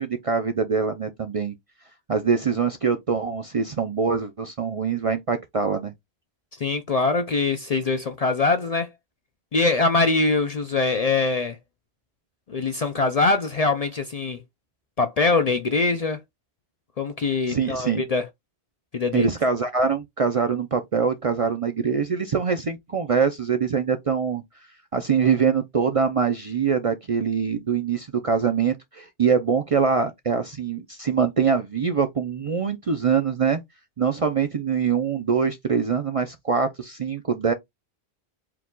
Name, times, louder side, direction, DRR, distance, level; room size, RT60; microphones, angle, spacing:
voice 1, 0.0-1.6 2.1-5.9 17.5-18.0 19.1-24.4 24.9-33.6 34.0-37.5, right 6 dB, 45° right, 0.5 m, -24 dB
voice 2, 6.6-8.9 9.5-11.6 12.5-14.4 15.0-16.2 17.0-18.3 18.9-19.3, left 3 dB, 50° left, 0.5 m, -23 dB
4.6 x 2.3 x 3.7 m
omnidirectional pair, 1.1 m